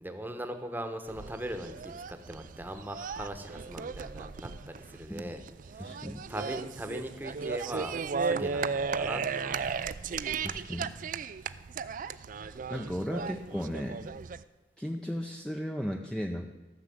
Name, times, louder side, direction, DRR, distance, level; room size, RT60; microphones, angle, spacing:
voice 1, 0.0-5.4 5.7-6.0 6.3-9.8, right 1 dB, 10° right, 7 dB, 1.0 m, -40 dB
sound 1, 1.1-14.4, right 5 dB, 50° right, 0.4 m, -36 dB
voice 2, 5.8-6.2 8.4-8.5 10.4-10.9 12.4-14.1 14.8-16.5, equal, 5° left, 3 dB, 0.5 m, -36 dB
13.5 x 6.3 x 7.7 m, 1.1 s
head